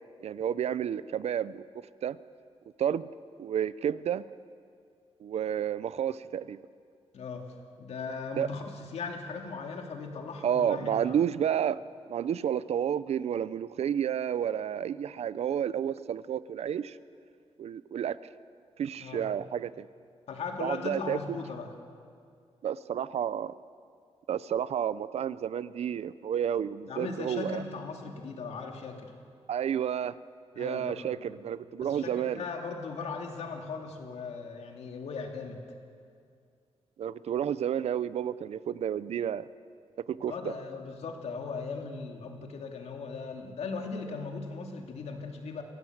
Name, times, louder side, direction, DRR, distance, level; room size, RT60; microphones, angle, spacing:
voice 1, 0.2-1.6 2.0-2.2 2.8-3.1 3.4-4.2 5.2-6.6 8.4-8.5 10.4-11.8 12.1-17.0 17.6-18.2 18.8-19.9 20.6-21.2 22.6-23.5 24.3-27.6 29.5-30.2 30.6-32.4 37.0-39.4 40.1-40.5, right 9 dB, 75° right, 16 dB, 0.6 m, -30 dB
voice 2, 7.1-7.5 7.8-11.2 19.0-19.3 20.3-21.7 26.9-29.1 30.5-31.4 31.8-35.6 40.3-45.6, left 4 dB, 80° left, 3 dB, 2.7 m, -38 dB
25.0 x 16.5 x 8.0 m, 2.3 s
wide cardioid pair, 115°, 11 cm